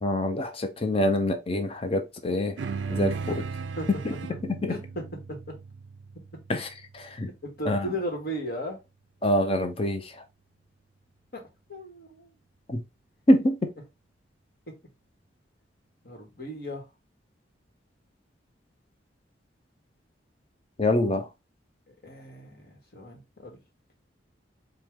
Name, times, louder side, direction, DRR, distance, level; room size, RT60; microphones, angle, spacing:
voice 1, 0.0-2.5 2.9-3.1 4.0-4.1 4.4-4.7 6.5-6.7 7.2-7.3 7.7-7.9 9.2-10.0 12.7-12.8 13.3-13.6 20.8-21.3, left 1 dB, 30° left, 0.6 m, -25 dB
sound 1, 2.6-7.3, right 5 dB, 75° right, 0.4 m, -36 dB
voice 2, 4.7-5.6 7.4-8.8 11.3-11.4 11.7-12.3 16.0-16.9 22.0-23.6, equal, 55° left, 1.4 m, -36 dB
4.5 x 2.3 x 3.5 m
head